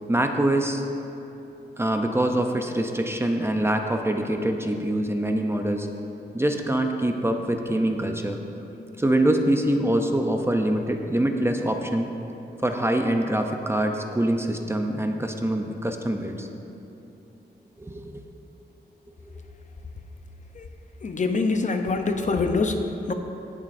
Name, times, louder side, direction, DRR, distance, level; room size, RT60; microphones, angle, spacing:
voice 1, 0.1-0.8 1.8-5.9 6.3-8.4 9.0-12.1 12.6-16.5 17.8-18.2 19.2-19.3, right 1 dB, 15° right, 4 dB, 0.5 m, -24 dB
voice 2, 21.0-22.8 23.1-23.2, left 3 dB, 45° left, 5 dB, 0.6 m, -24 dB
18.5 x 7.3 x 2.6 m, 2.9 s
wide cardioid pair, 130°, 18 cm